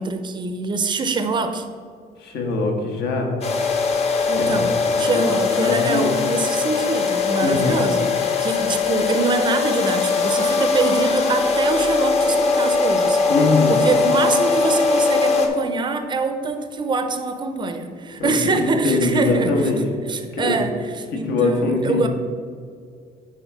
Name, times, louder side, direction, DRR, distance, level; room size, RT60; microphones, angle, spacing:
voice 1, 0.0-1.6 4.3-4.7 5.0-8.1 8.4-13.2 13.7-19.5 20.1-22.1, right 3 dB, 30° right, 7 dB, 0.5 m, -24 dB
voice 2, 2.2-3.3 4.3-4.6 4.8-6.1 7.4-7.8 13.3-13.7 18.2-19.8 20.3-20.5 21.2-22.1, left 3 dB, 80° left, 2 dB, 1.5 m, -22 dB
sound 1, 3.4-15.5, left 4 dB, 40° left, 0.8 m, -20 dB
9.2 x 3.9 x 4.7 m, 2.1 s
cardioid pair, 175°, 17 cm